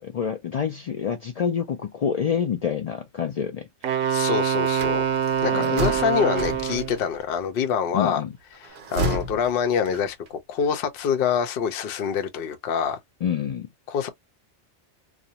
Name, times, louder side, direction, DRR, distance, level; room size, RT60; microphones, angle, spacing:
voice 1, 0.0-3.7 5.5-5.8 7.9-8.3 13.2-13.7, left 7 dB, 90° left, 0.3 m, -27 dB
Wind instrument woodwind instrument, 3.8-7.0, right 8 dB, 85° right, 0.9 m, -24 dB
voice 2, 4.1-5.0 5.4-8.2 8.9-13.0 13.9-14.1, left 7 dB, 60° left, 0.8 m, -25 dB
sound 1, 4.7-7.2 8.5-10.3, right 2 dB, 50° right, 0.7 m, -32 dB
2.5 x 2.1 x 2.7 m
omnidirectional pair, 1.2 m